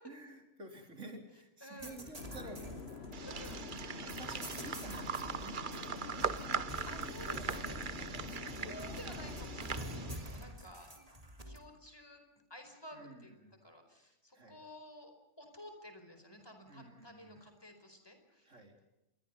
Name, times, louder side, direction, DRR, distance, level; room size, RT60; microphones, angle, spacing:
voice 1, 0.0-3.3 4.0-6.3 6.9-9.4 12.9-13.6 14.3-14.6 16.7-17.4 18.4-18.8, right 2 dB, 65° right, 3 dB, 4.4 m, -52 dB
voice 2, 1.6-2.0 3.2-3.9 6.9-8.0 8.5-10.9 11.5-12.2 12.5-13.3 13.6-18.5, left 1 dB, 15° left, 6 dB, 4.8 m, -52 dB
sound 1, 1.8-11.6, equal, 25° right, 3.3 m, -48 dB
sound 2, 2.2-10.1, left 5 dB, 55° left, 1.4 m, -47 dB
sound 3, 3.1-10.4, right 6 dB, 40° right, 1.0 m, -41 dB
27.5 x 22.5 x 5.6 m, 0.95 s
omnidirectional pair, 1.4 m